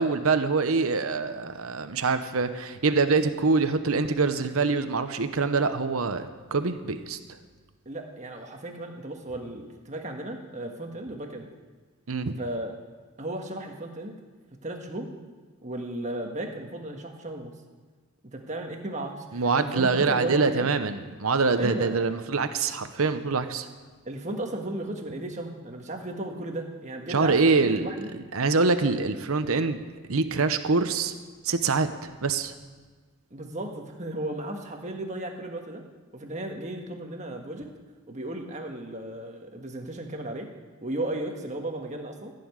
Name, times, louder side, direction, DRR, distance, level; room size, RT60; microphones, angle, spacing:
voice 1, 0.0-7.2 12.1-12.4 19.3-23.7 27.1-27.9 28.3-29.8 30.1-31.1 31.4-32.5, right 4 dB, 75° right, 9 dB, 0.9 m, -25 dB
voice 2, 7.8-11.5 12.4-12.7 13.2-14.2 14.6-15.1 15.6-17.5 18.3-20.7 21.6-21.9 24.0-28.1 33.3-35.8 36.1-37.7 38.1-40.5 40.8-42.3, right 1 dB, 35° right, 3 dB, 1.5 m, -35 dB
15.0 x 6.9 x 9.6 m, 1.4 s
head